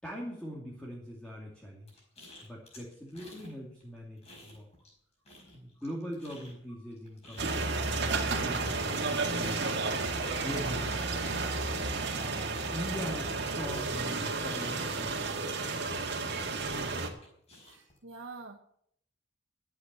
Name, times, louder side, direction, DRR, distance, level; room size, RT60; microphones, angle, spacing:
voice 1, 0.0-2.0 2.4-4.7 5.5-9.9 10.3-11.5 12.1-15.5, equal, 5° left, -4 dB, 2.6 m, -42 dB
sound 1, 1.9-3.5 3.8-5.0 5.2-15.2 15.6-18.0, left 1 dB, 35° left, 5.1 m, -54 dB
sound 2, 7.4-17.1, right 3 dB, 60° right, 1.9 m, -32 dB
voice 2, 17.6-18.6, right 3 dB, 80° right, 1 dB, 1.2 m, -46 dB
12.5 x 8.8 x 6.9 m, 0.69 s
head